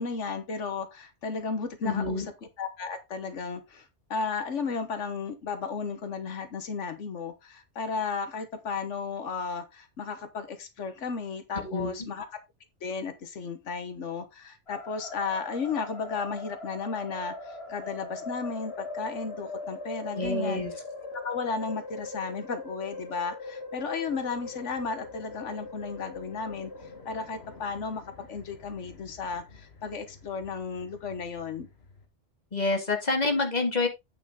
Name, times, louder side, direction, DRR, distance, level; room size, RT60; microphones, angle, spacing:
voice 1, 0.0-2.2 2.6-12.2 12.8-20.6 21.1-31.7, left 5 dB, 85° left, 1.5 m, -34 dB
voice 2, 1.8-2.3 11.5-11.9 20.1-20.7 32.5-33.9, left 3 dB, 35° left, 2.2 m, -27 dB
sound 1, 14.7-32.1, left 3 dB, 60° left, 1.9 m, -42 dB
8.8 x 6.6 x 3.6 m
omnidirectional pair, 1.2 m